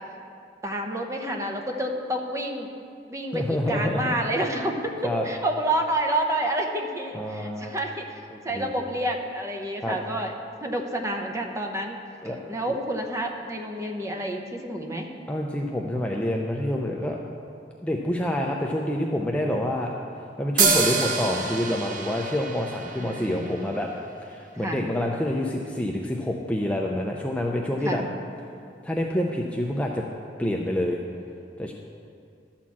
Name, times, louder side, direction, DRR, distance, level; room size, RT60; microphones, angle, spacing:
voice 1, 0.6-2.7 3.1-10.3 10.6-12.0 12.5-15.1 22.9-23.5 24.6-24.8 27.8-28.1, right 1 dB, 20° right, 2 dB, 0.9 m, -29 dB
voice 2, 3.3-4.2 5.0-5.2 7.1-7.7 8.3-8.7 9.8-10.0 12.2-12.4 15.3-17.2 17.8-19.9 20.4-23.9 24.2-28.0 28.8-30.0 30.4-31.0 31.6-31.7, left 1 dB, 10° left, -1 dB, 0.5 m, -27 dB
sound 1, 20.6-24.1, right 5 dB, 50° right, 0.9 m, -27 dB
12.5 x 4.4 x 7.3 m, 2.3 s
head